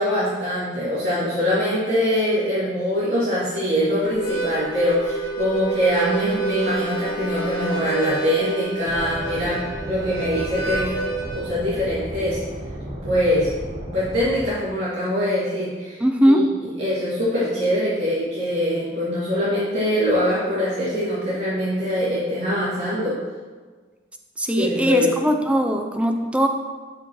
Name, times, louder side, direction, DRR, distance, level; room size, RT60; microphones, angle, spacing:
voice 1, 0.0-10.9 11.3-12.4 13.0-13.5 13.9-16.4 16.8-23.2 24.6-25.1, equal, 75° right, -11 dB, 2.3 m, -23 dB
Harmonica, 4.1-11.4, right 3 dB, 55° left, 1.9 m, -28 dB
sound 1, 8.8-14.5, right 1 dB, 35° right, 1.1 m, -34 dB
voice 2, 16.0-16.4 24.4-26.5, equal, 5° right, 4 dB, 0.5 m, -20 dB
11.5 x 6.0 x 3.1 m, 1.4 s
head